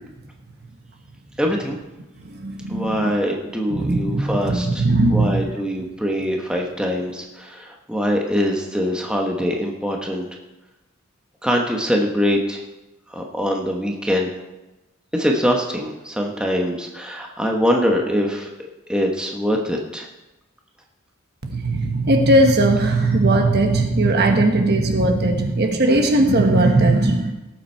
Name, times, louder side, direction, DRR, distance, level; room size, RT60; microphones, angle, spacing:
voice 1, 1.4-1.8 2.7-4.8 5.1-10.3 11.4-12.6 13.1-14.3 15.1-20.1, equal, 5° right, 1 dB, 1.1 m, -23 dB
voice 2, 2.2-3.1 3.7-5.4 21.4-27.3, right 2 dB, 50° right, 4 dB, 1.4 m, -18 dB
17.5 x 7.3 x 4.5 m, 1.0 s
head